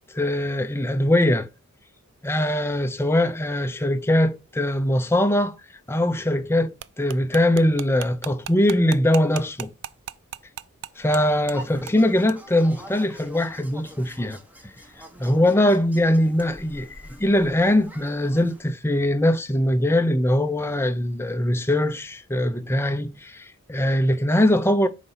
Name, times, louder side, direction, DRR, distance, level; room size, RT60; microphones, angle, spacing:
voice 1, 0.1-1.5 2.2-5.6 5.9-9.7 11.0-14.4 15.2-24.9, left 1 dB, 10° left, 0.5 m, -21 dB
sound 1, 6.8-11.2 11.5-11.6 11.9-12.0 12.3-12.4, right 10 dB, 55° right, 0.4 m, -35 dB
sound 2, 10.9-18.6, right 1 dB, 5° right, 0.9 m, -45 dB
5.1 x 4.0 x 5.6 m
head